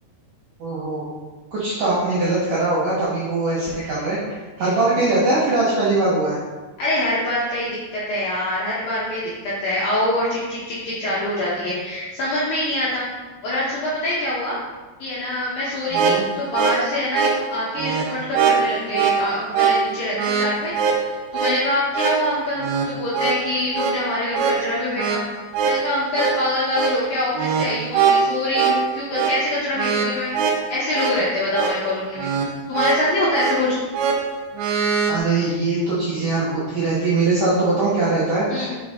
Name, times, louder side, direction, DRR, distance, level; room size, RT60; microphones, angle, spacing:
voice 1, 0.6-1.2 1.5-6.4 15.9-16.2 35.1-38.5, right 2 dB, 65° right, -8 dB, 2.2 m, -21 dB
voice 2, 6.8-13.1 13.4-14.6 15.0-25.2 25.6-32.3 32.7-33.8 38.5-38.8, left 1 dB, 70° left, -8 dB, 2.2 m, -25 dB
sound 1, 15.7-35.2, right 6 dB, 80° right, 2.5 m, -23 dB
6.3 x 6.1 x 3.7 m, 1.3 s
omnidirectional pair, 5.7 m